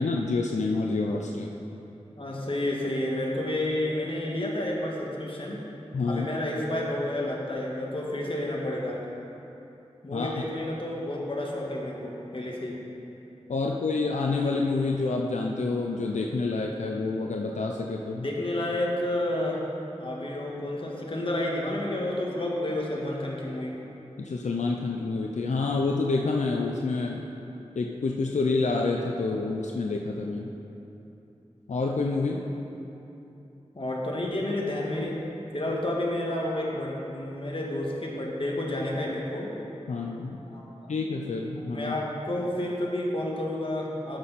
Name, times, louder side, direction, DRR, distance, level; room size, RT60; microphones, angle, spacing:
voice 1, 0.0-1.5 5.9-6.3 10.1-10.3 13.5-18.3 24.2-27.2 27.8-30.5 31.7-32.4 39.9-40.4 40.9-41.9, left 3 dB, 90° left, 0 dB, 0.5 m, -28 dB
voice 2, 2.1-5.6 6.1-9.0 10.0-12.8 18.2-19.6 20.0-23.8 33.7-35.2 35.5-39.5 40.5-40.7 41.7-44.2, left 1 dB, 50° left, -3 dB, 1.6 m, -30 dB
12.5 x 6.0 x 4.2 m, 2.9 s
wide cardioid pair, 60°, 12 cm